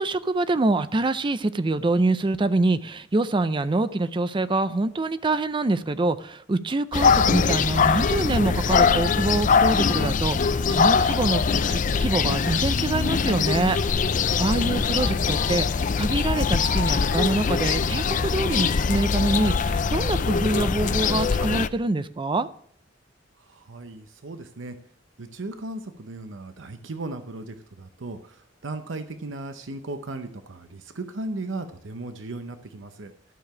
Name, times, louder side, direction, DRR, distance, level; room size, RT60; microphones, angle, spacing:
voice 1, 0.0-13.9 14.4-22.5, right 2 dB, 25° right, 0.5 m, -25 dB
sound 1, 6.9-21.7, left 5 dB, 45° left, 0.4 m, -22 dB
voice 2, 23.5-24.7 25.2-33.1, right 2 dB, 85° right, 0.8 m, -36 dB
12.5 x 6.8 x 5.9 m
head